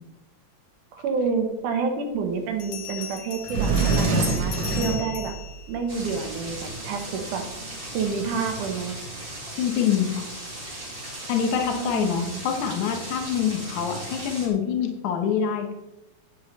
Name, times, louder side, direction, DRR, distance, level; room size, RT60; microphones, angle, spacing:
voice 1, 0.9-5.3 5.7-7.4 7.9-9.0 11.7-12.5, right 5 dB, 80° right, 5 dB, 2.8 m, -29 dB
Bell, 1.4-1.5 2.6-6.5, left 9 dB, 55° left, 2.1 m, -38 dB
Sliding door, 3.0-3.1 3.4-5.7, right 3 dB, 60° right, 3.4 m, -24 dB
sound 1, 5.9-14.5, right 1 dB, 20° right, 1.8 m, -37 dB
voice 2, 9.6-10.3 11.3-15.7, left 8 dB, 70° left, 5 dB, 2.6 m, -25 dB
10.5 x 9.6 x 4.1 m, 0.97 s
omnidirectional pair, 3.6 m